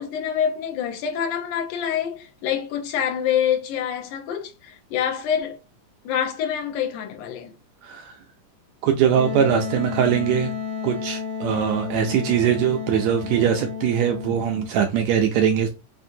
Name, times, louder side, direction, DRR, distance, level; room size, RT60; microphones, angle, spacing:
voice 1, 0.0-5.6 6.1-7.5, left 8 dB, 80° left, 2.3 m, -26 dB
voice 2, 7.8-8.2 8.8-10.5 10.8-15.7, right 8 dB, 80° right, 1.6 m, -21 dB
Wind instrument woodwind instrument, 9.1-14.7, left 6 dB, 65° left, 0.5 m, -31 dB
5.9 x 2.5 x 2.6 m
omnidirectional pair, 3.5 m